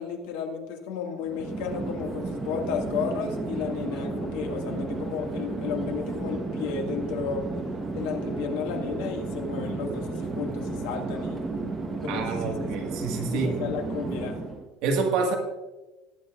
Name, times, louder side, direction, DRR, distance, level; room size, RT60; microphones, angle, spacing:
voice 1, 0.0-7.5 7.9-11.4 12.0-12.7 13.4-14.4, left 6 dB, 85° left, 2 dB, 2.0 m, -33 dB
Chatter / Fixed-wing aircraft airplane, 1.2-14.6, right 3 dB, 15° right, 1.2 m, -33 dB
voice 2, 12.1-13.6 14.8-15.3, right 4 dB, 55° right, 2 dB, 1.7 m, -27 dB
20.0 x 8.8 x 2.5 m, 1.1 s
cardioid pair, 170°, 0 cm